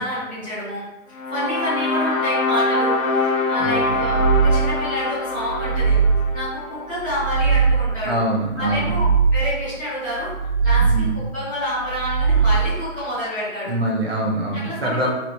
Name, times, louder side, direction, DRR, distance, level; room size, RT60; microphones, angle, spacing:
voice 1, 0.0-3.0 3.5-6.0 6.3-8.2 8.6-10.3 10.6-13.7 14.5-15.1, equal, 5° right, -18 dB, 0.7 m, -28 dB
sound 1, 1.1-7.4, left 2 dB, 85° left, 0.5 m, -24 dB
voice 2, 3.6-4.0 8.0-9.0 10.8-11.2 13.6-15.1, right 1 dB, 50° right, -1 dB, 0.6 m, -24 dB
sound 2, 3.8-4.9 5.4-6.5 7.0-8.1 8.6-9.7 10.2-11.3 11.8-12.9, right 5 dB, 40° left, 1.0 m, -20 dB
2.9 x 2.8 x 2.6 m, 1.0 s
hypercardioid pair, 170°, 39 cm